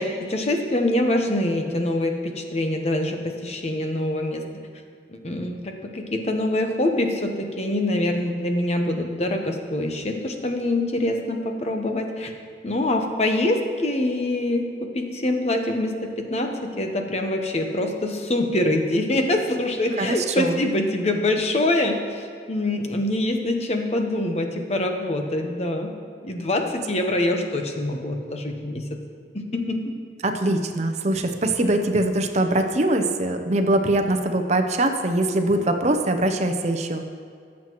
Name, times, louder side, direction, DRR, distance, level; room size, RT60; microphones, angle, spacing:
voice 1, 0.0-4.4 5.1-12.3 12.6-25.9 26.2-29.0 29.3-29.9, left 1 dB, 35° left, 4 dB, 0.9 m, -25 dB
voice 2, 20.0-20.6 30.2-37.0, right 1 dB, 40° right, 6 dB, 0.6 m, -22 dB
18.0 x 7.5 x 3.0 m, 2.3 s
head